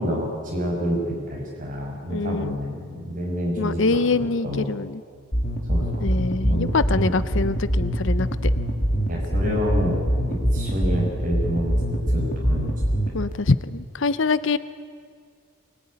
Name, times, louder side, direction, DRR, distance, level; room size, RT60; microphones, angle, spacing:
voice 1, 0.0-4.6 5.7-7.1 9.1-11.7 12.1-12.8, equal, 40° right, -2 dB, 6.1 m, -28 dB
voice 2, 2.1-2.6 3.6-5.0 6.0-8.3 13.1-14.6, left 3 dB, 60° left, 15 dB, 0.6 m, -24 dB
sound 1, 5.3-13.3, equal, 35° left, 2.8 m, -23 dB
23.0 x 19.5 x 9.8 m, 2.1 s
head